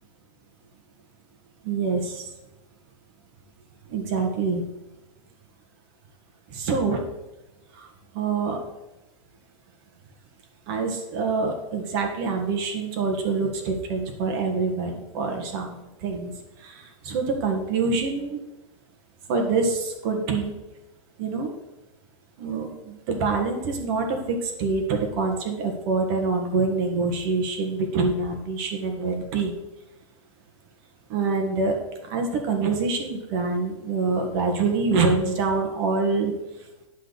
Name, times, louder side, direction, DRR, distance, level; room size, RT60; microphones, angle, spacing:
voice 1, 1.6-2.2 3.9-4.6 6.5-7.1 7.7-7.9 8.1-8.6 10.7-18.4 19.3-20.5 21.2-21.5 22.4-29.5 31.1-31.8 32.0-36.3, right 4 dB, 45° right, 3 dB, 1.6 m, -26 dB
10.5 x 4.0 x 6.9 m, 0.98 s
supercardioid pair, 150°, 17 cm